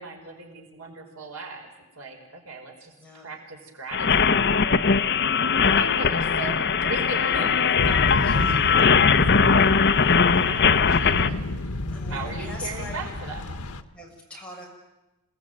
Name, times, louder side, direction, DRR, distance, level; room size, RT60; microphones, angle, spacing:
voice 1, 0.0-1.7 2.0-4.8 5.6-11.8 12.1-13.6, right 3 dB, 70° right, 2 dB, 5.0 m, -38 dB
voice 2, 3.0-3.3 8.2-8.7 11.9-13.1 13.9-14.7, left 1 dB, 5° left, -3 dB, 6.9 m, -41 dB
sound 1, 3.9-11.3, left 6 dB, 50° left, 0.9 m, -20 dB
sound 2, 7.8-13.8, left 2 dB, 90° left, 1.2 m, -29 dB
28.0 x 19.0 x 9.3 m, 0.99 s
head